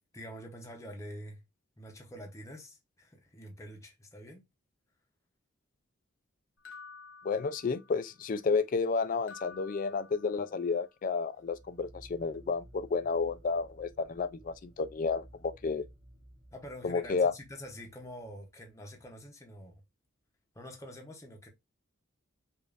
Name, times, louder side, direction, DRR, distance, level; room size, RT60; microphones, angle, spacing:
voice 1, 0.1-1.4 1.8-4.4 16.5-19.8 20.5-21.5, equal, 15° left, 0.7 m, -46 dB
sound 1, 6.6-8.1 9.3-10.7, left 5 dB, 60° left, 0.8 m, -51 dB
voice 2, 7.2-15.9 16.8-17.3, left 4 dB, 40° left, 0.3 m, -31 dB
sound 2, 11.4-18.7, right 1 dB, 25° right, 1.3 m, -56 dB
5.0 x 2.5 x 2.4 m
head